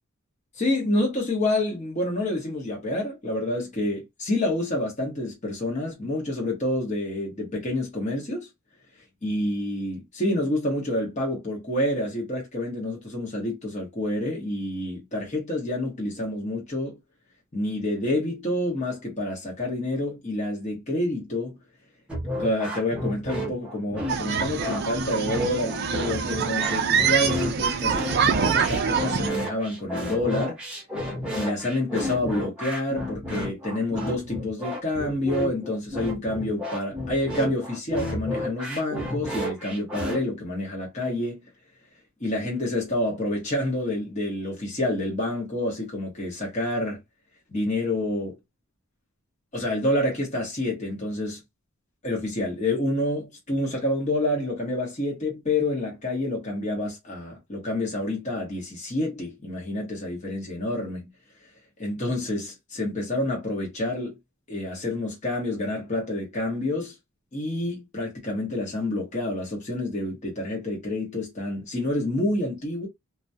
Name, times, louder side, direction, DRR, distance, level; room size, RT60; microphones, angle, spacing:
voice 1, 0.5-8.5 9.2-17.0 17.5-21.5 22.4-28.0 28.4-30.6 31.3-41.4 42.2-47.0 47.5-48.4 49.5-51.4 52.0-61.1 61.8-64.2 64.5-66.9 67.3-72.9, left 1 dB, 30° left, 0.9 m, -28 dB
sound 1, 22.1-40.2, left 1 dB, 5° right, 0.7 m, -32 dB
sound 2, 24.1-29.3, right 6 dB, 50° right, 0.4 m, -25 dB
2.2 x 2.2 x 2.6 m
head